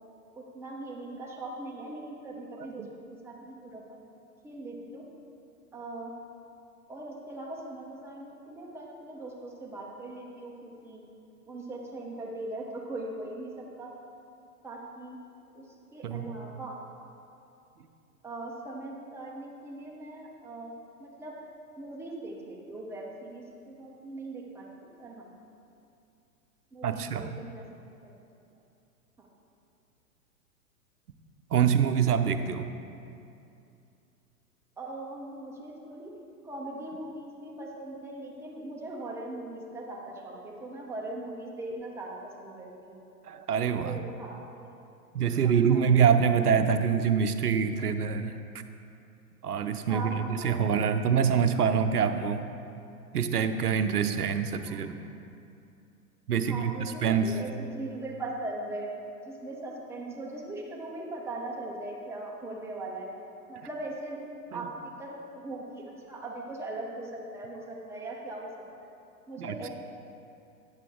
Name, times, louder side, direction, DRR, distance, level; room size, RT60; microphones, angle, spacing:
voice 1, 0.4-2.8 3.2-4.0 4.4-5.0 5.7-6.1 6.9-11.0 11.5-13.5 13.8-13.9 14.6-15.2 15.5-15.6 15.9-16.8 18.2-20.7 21.0-21.3 21.8-25.3 26.7-28.1 29.2-29.3 34.8-36.1 36.4-43.0 43.8-44.8 45.4-45.8 49.9-50.6 54.5-54.8 56.5-58.9 59.3-63.1 63.5-64.2 64.5-68.5 69.3-69.7, right 2 dB, 5° right, -2 dB, 0.8 m, -40 dB
voice 2, 2.6-2.9 16.0-16.3 26.8-27.4 31.5-32.7 43.2-44.0 45.1-48.4 49.4-52.4 53.1-55.0 56.3-57.3 64.5-64.7 69.4-69.7, right 7 dB, 75° right, 9 dB, 0.7 m, -25 dB
9.5 x 7.5 x 3.7 m, 2.7 s
figure-of-eight pair, 100°, 46 cm